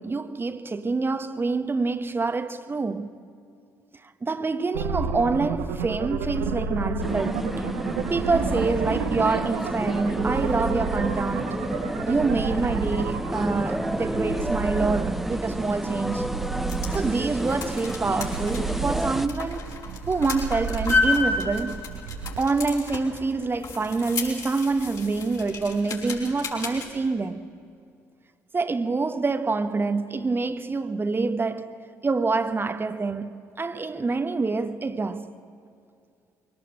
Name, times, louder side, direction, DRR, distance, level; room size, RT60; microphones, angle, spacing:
voice 1, 0.0-3.1 4.0-7.5 8.1-11.6 12.1-16.3 16.9-19.7 20.1-21.9 22.4-27.5 28.5-31.7 32.0-35.3, right 3 dB, 30° right, 1.2 m, -26 dB
sound 1, 4.7-22.4, right 6 dB, 80° right, 1.2 m, -31 dB
sound 2, 7.0-19.3, equal, ahead, 1.0 m, -30 dB
sound 3, 16.4-26.9, left 4 dB, 55° left, 5.0 m, -32 dB
23.0 x 18.5 x 7.8 m
hypercardioid pair, 55°, 8 cm